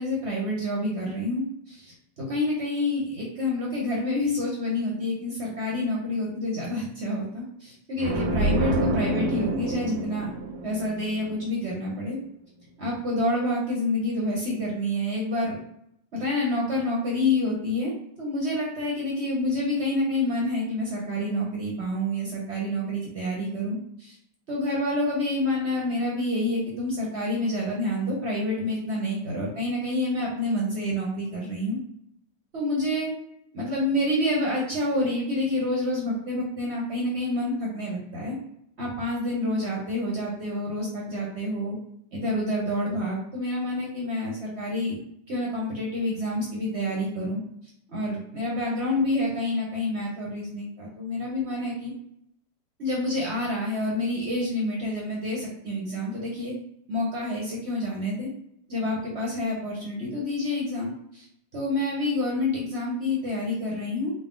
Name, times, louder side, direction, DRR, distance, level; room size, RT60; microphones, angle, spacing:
voice 1, 0.0-10.3 10.6-12.2 12.8-15.6 16.1-17.9 18.2-24.2 24.5-31.8 32.5-33.1 33.5-38.4 38.8-41.8 42.1-45.0 45.3-47.4 47.9-51.9 52.8-56.5 56.9-58.3 58.7-61.3 61.5-64.1, left 1 dB, 50° right, -3 dB, 0.8 m, -28 dB
sound 1, 8.0-11.7, right 1 dB, 70° right, 1.1 m, -27 dB
4.5 x 2.0 x 3.6 m, 0.74 s
omnidirectional pair, 2.0 m